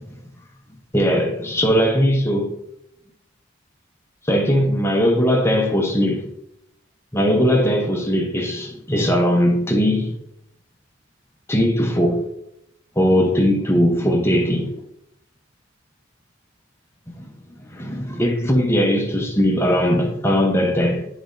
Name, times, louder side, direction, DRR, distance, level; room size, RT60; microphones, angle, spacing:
voice 1, 0.9-2.5 4.2-6.3 7.1-10.1 11.5-12.2 13.0-14.8 17.2-17.3 17.7-21.1, equal, 15° left, 0.8 m, -19 dB
10.0 x 4.0 x 2.6 m
head